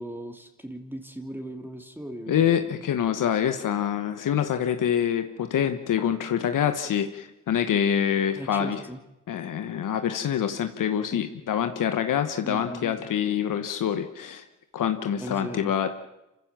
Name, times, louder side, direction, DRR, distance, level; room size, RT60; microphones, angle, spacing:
voice 1, 0.0-2.8 8.4-9.0 11.1-11.2 12.4-13.0 15.2-15.7, right 1 dB, 5° right, 5 dB, 2.9 m, -38 dB
voice 2, 2.3-8.8 9.3-14.4 14.7-15.9, left 9 dB, 75° left, 8 dB, 1.2 m, -26 dB
26.0 x 15.0 x 7.4 m, 0.94 s
supercardioid pair, 55°, 32 cm